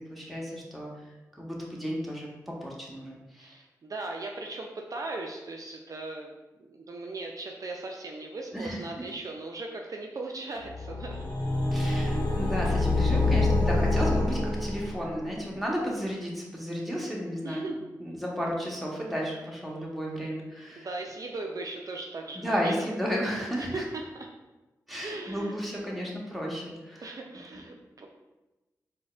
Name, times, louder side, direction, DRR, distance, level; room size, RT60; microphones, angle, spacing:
voice 1, 0.1-0.9 1.3-3.6 8.5-9.1 11.7-17.7 18.0-20.9 22.3-23.9 24.9-27.1, equal, ahead, -3 dB, 0.9 m, -33 dB
voice 2, 3.4-6.3 6.6-11.4 17.4-17.8 20.8-22.9 23.6-24.3 25.0-25.6 27.0-28.1, right 2 dB, 50° right, 1 dB, 0.4 m, -38 dB
sound 1, 10.6-15.3, left 2 dB, 65° left, 0.7 m, -26 dB
3.9 x 2.2 x 2.4 m, 1.1 s
cardioid pair, 40°, 7 cm